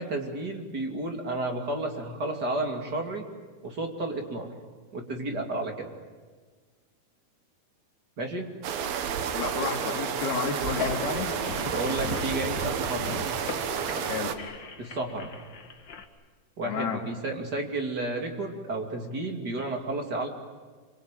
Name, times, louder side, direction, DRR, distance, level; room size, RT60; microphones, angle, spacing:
voice 1, 0.0-3.2 3.6-4.5 4.9-5.9 8.2-8.5 11.7-13.2 14.8-15.3 16.6-20.3, right 2 dB, 30° right, 3 dB, 2.6 m, -32 dB
sound 1, 8.6-14.4, right 7 dB, 75° right, 3.3 m, -31 dB
voice 2, 9.3-11.4 14.0-14.4 16.6-17.0, left 6 dB, 75° left, 2 dB, 4.5 m, -31 dB
sound 2, 10.6-16.0, left 5 dB, 45° left, 1.6 m, -38 dB
26.5 x 25.0 x 9.1 m, 1.5 s
omnidirectional pair, 4.5 m